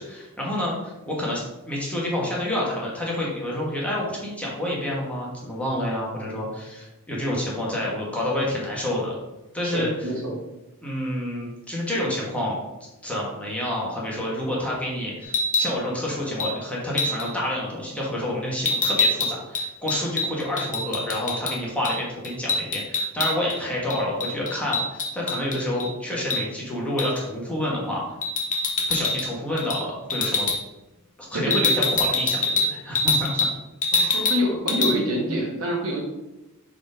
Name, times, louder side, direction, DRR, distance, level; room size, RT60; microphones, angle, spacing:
voice 1, 0.0-9.2 9.5-10.1 10.8-12.6 13.0-28.0 28.9-30.5 31.2-33.5 33.9-34.3, left 1 dB, 5° left, -5 dB, 1.4 m, -28 dB
voice 2, 9.6-10.3 31.3-31.6 33.9-36.0, equal, 65° right, -2 dB, 1.7 m, -26 dB
sound 1, 15.2-15.7 16.4-16.5 17.0-17.3 18.6-21.5 21.8-22.0 22.2-23.6 23.9-25.9 26.3-26.4 27.0-27.2 28.2-29.3 29.6-29.8 30.1-30.6 31.5-33.5 33.8-34.4 34.7-34.9, left 3 dB, 35° left, 0.9 m, -24 dB
4.8 x 4.0 x 5.1 m, 0.99 s
head